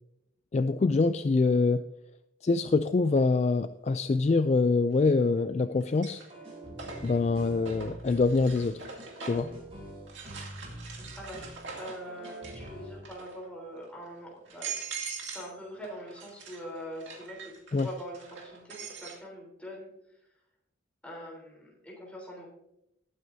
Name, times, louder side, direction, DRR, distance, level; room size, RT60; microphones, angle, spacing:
voice 1, 0.5-1.8 2.4-6.2 7.0-8.8 9.2-9.5 17.7-17.9, left 3 dB, 35° left, 11 dB, 0.3 m, -25 dB
sound 1, 3.1-3.2 4.9-5.4 5.8-9.6 10.1-12.7 13.0-13.5 14.0-14.1 14.5-15.5 15.8-19.2, right 5 dB, 70° right, 2.3 m, -43 dB
sound 2, 6.3-13.0, equal, 30° right, 4.3 m, -45 dB
voice 2, 11.1-14.7 15.2-17.4 17.7-19.9 21.0-22.5, equal, 5° left, -3 dB, 3.7 m, -43 dB
19.0 x 9.3 x 2.7 m, 0.83 s
head